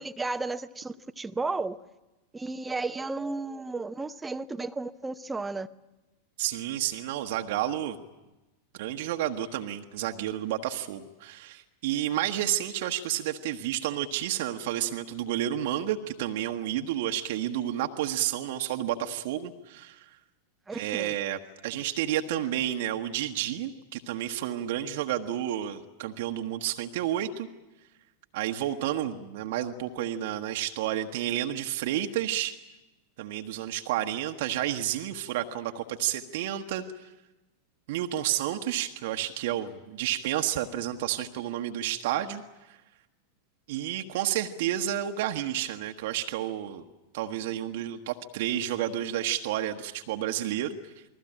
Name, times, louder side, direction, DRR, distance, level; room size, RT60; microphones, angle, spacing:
voice 1, 0.0-1.8 2.3-5.7 20.7-21.2, right 3 dB, 10° right, 11 dB, 0.9 m, -33 dB
voice 2, 6.4-8.0 8.8-20.2 20.7-27.5 28.3-32.6 33.2-37.1 37.9-42.8 43.7-46.8 47.1-51.0, right 12 dB, 50° right, 5 dB, 1.3 m, -31 dB
28.5 x 21.0 x 8.9 m, 1.0 s
figure-of-eight pair, 90°, 0 cm